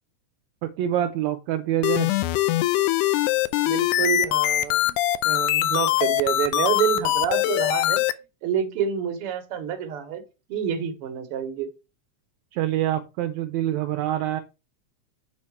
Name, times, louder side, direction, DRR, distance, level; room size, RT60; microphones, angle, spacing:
voice 1, 0.6-2.1 12.5-14.4, right 12 dB, 80° right, 5 dB, 1.8 m, -26 dB
sound 1, 1.8-8.1, left 14 dB, 85° left, 2.0 m, -22 dB
voice 2, 3.7-4.8 5.2-8.0 8.4-10.2 10.5-11.7, right 8 dB, 60° right, 8 dB, 1.8 m, -27 dB
7.5 x 4.3 x 4.7 m, 0.28 s
omnidirectional pair, 3.5 m